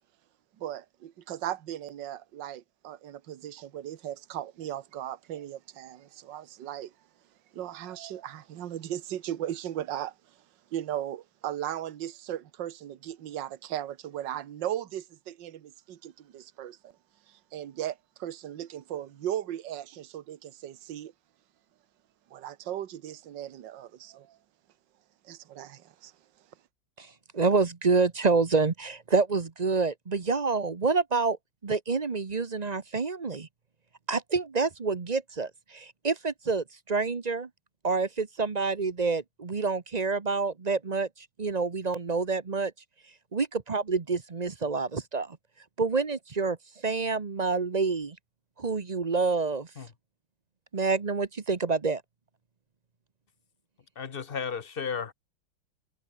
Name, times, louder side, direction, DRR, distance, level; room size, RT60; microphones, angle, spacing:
voice 1, 0.6-6.9 7.5-10.1 10.7-16.9 17.3-21.1 22.3-24.4 25.2-26.1, right 11 dB, 60° right, 1.8 m, -37 dB
voice 2, 27.0-31.4 31.6-33.5 34.1-37.5 37.8-42.7 43.3-45.4 45.8-48.2 48.6-49.7 50.7-52.0, right 4 dB, 35° right, 0.6 m, -28 dB
voice 3, 54.0-55.1, left 6 dB, 40° left, 0.8 m, -33 dB
omnidirectional pair, 2.3 m